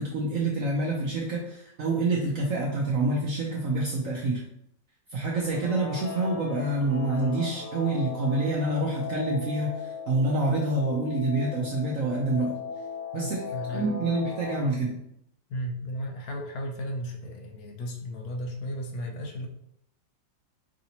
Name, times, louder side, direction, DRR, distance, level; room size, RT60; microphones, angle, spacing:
voice 1, 0.0-4.4 5.1-12.6 13.1-13.4 13.7-15.0, right 2 dB, 75° right, -2 dB, 0.7 m, -27 dB
Guitar, 5.2-14.7, left 5 dB, 15° right, 0.8 m, -38 dB
voice 2, 13.2-13.9 15.5-19.5, equal, 65° left, 2 dB, 1.0 m, -35 dB
4.9 x 2.7 x 2.8 m, 0.76 s
omnidirectional pair, 2.0 m